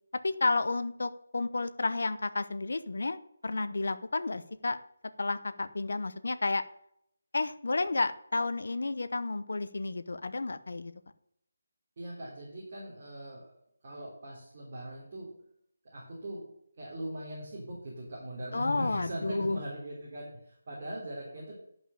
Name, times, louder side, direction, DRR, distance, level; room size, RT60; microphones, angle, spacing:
voice 1, 0.1-4.8 5.2-6.6 7.3-10.9 18.5-19.6, left 3 dB, 70° left, 11 dB, 0.9 m, -31 dB
voice 2, 12.0-13.6 13.8-15.3 15.8-16.5 16.8-21.6, right 1 dB, 35° right, -5 dB, 3.4 m, -40 dB
11.0 x 5.5 x 6.9 m, 0.72 s
figure-of-eight pair, 175°, 0 cm